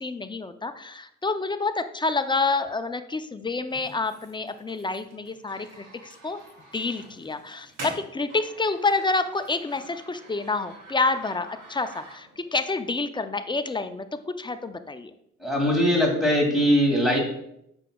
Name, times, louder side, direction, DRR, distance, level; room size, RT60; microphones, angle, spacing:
voice 1, 0.0-5.9 6.2-6.4 6.7-15.1, left 3 dB, 15° left, 9 dB, 0.4 m, -28 dB
sound 1, 3.7-12.5, right 1 dB, 85° right, 2.4 m, -46 dB
voice 2, 15.4-17.2, equal, ahead, -1 dB, 2.2 m, -21 dB
7.5 x 6.1 x 2.3 m, 0.75 s
cardioid pair, 90°, 30 cm